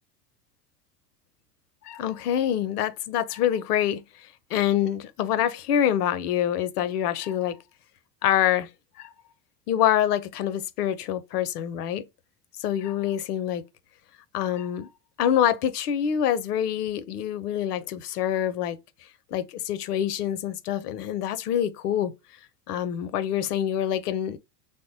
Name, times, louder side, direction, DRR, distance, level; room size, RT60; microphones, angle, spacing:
voice 1, 1.8-7.6 8.2-8.7 9.0-9.1 9.7-12.0 12.6-13.6 14.3-14.9 15.2-18.8 19.3-22.1 22.7-24.4, left 10 dB, 75° left, 0.6 m, -26 dB
3.3 x 2.0 x 2.6 m
hypercardioid pair, 85°, 47 cm